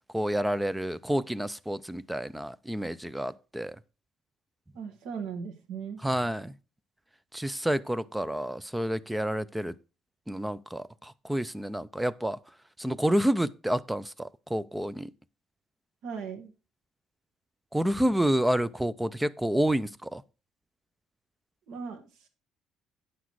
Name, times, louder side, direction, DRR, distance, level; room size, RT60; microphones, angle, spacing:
voice 1, 0.1-3.8 6.0-6.5 7.3-9.7 10.3-12.4 12.8-15.1 17.7-20.2, right 1 dB, 5° right, 0.4 m, -29 dB
voice 2, 4.7-6.0 16.0-16.5 21.7-22.3, right 6 dB, 75° right, 1.7 m, -38 dB
9.4 x 6.0 x 4.7 m
cardioid pair, 160°, 0 cm